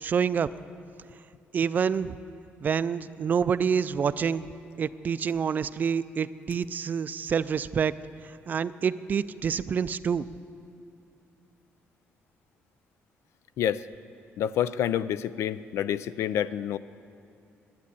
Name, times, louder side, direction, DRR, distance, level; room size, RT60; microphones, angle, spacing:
voice 1, 0.0-0.5 1.5-2.2 2.6-4.5 4.8-7.9 8.5-10.3, right 7 dB, 40° right, 15 dB, 0.3 m, -27 dB
voice 2, 14.4-16.8, left 10 dB, 80° left, 15 dB, 0.4 m, -28 dB
12.0 x 8.4 x 9.9 m, 2.6 s
cardioid pair, 135°, 5 cm